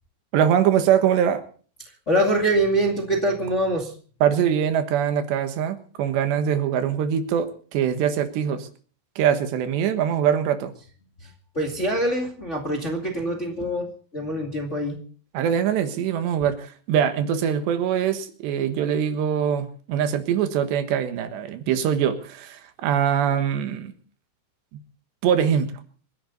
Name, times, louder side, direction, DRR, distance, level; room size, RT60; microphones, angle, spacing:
voice 1, 0.3-1.4 4.2-8.7 9.2-10.7 15.3-23.9 25.2-25.7, right 9 dB, 85° right, 8 dB, 3.7 m, -23 dB
voice 2, 2.1-3.9 11.2-11.3 11.5-15.0, right 1 dB, 25° left, 1 dB, 1.7 m, -24 dB
27.0 x 11.0 x 4.0 m, 0.43 s
omnidirectional pair, 4.8 m